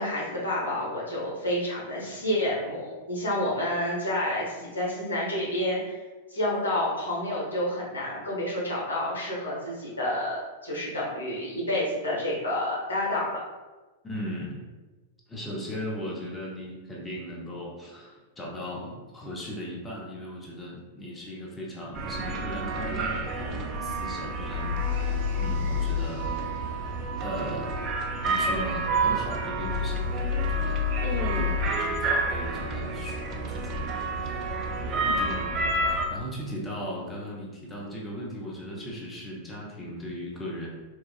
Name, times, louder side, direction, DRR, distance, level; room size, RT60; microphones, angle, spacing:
voice 1, 0.0-5.9 6.3-13.4 31.0-31.6, left 1 dB, 75° left, -5 dB, 1.1 m, -29 dB
voice 2, 14.0-14.7 15.3-26.4 27.2-27.9 28.2-31.1 31.3-31.4 31.8-34.5 34.8-40.7, equal, 15° left, -4 dB, 0.7 m, -38 dB
sound 1, 21.9-36.1, right 3 dB, 35° right, 0.4 m, -30 dB
sound 2, 24.5-26.1 29.6-31.7, left 10 dB, 50° left, 0.3 m, -29 dB
4.3 x 2.3 x 2.4 m, 1.2 s
figure-of-eight pair, 95°, 0 cm